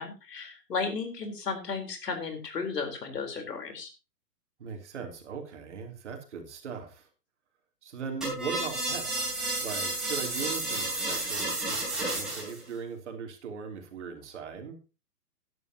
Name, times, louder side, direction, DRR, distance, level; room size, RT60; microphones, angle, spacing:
voice 1, 0.0-3.9, left 5 dB, 80° left, 6 dB, 4.2 m, -34 dB
voice 2, 4.6-7.1 7.8-14.8, right 6 dB, 45° right, 4 dB, 3.2 m, -39 dB
sound 1, 8.2-12.6, right 2 dB, ahead, 4.3 m, -31 dB
14.0 x 11.0 x 2.9 m, 0.29 s
hypercardioid pair, 170°, 48 cm